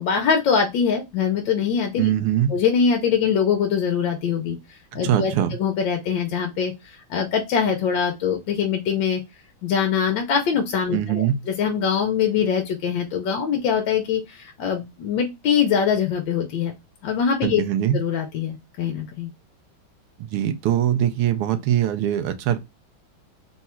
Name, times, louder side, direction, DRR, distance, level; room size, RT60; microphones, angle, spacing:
voice 1, 0.0-2.1 2.5-9.2 9.6-16.7 17.0-17.6 17.9-19.3, left 7 dB, 70° left, 1.3 m, -23 dB
voice 2, 2.0-2.6 4.9-5.6 10.9-11.4 17.4-18.0 20.2-22.6, right 10 dB, 90° right, 1.6 m, -22 dB
4.1 x 2.3 x 4.2 m
omnidirectional pair, 2.4 m